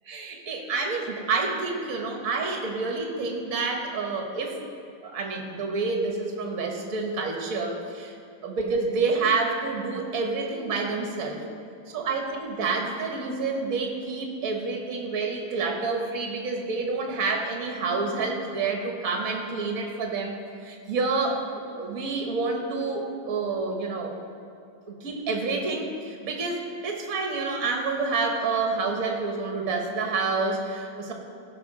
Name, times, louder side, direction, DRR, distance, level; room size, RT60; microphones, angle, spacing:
voice 1, 0.0-4.6 5.0-8.1 8.4-11.4 11.9-24.1 24.9-31.1, right 4 dB, 50° right, 2 dB, 1.6 m, -28 dB
17.0 x 5.9 x 4.9 m, 2.5 s
omnidirectional pair, 2.1 m